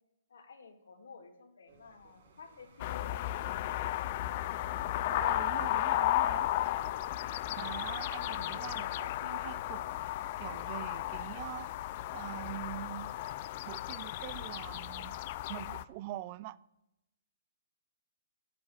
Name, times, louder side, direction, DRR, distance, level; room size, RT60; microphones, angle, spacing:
voice 1, 0.3-3.8, left 5 dB, 75° left, 2.2 m, -52 dB
sound 1, 1.7-10.7, right 3 dB, 60° right, 3.3 m, -60 dB
sound 2, 2.8-15.8, left 14 dB, 40° left, 0.4 m, -34 dB
voice 2, 5.1-6.5 7.6-9.8 10.4-11.7 12.1-13.1 13.6-15.2 15.5-16.6, right 15 dB, 35° right, 0.4 m, -44 dB
8.4 x 8.0 x 8.0 m
hypercardioid pair, 145°, 0 cm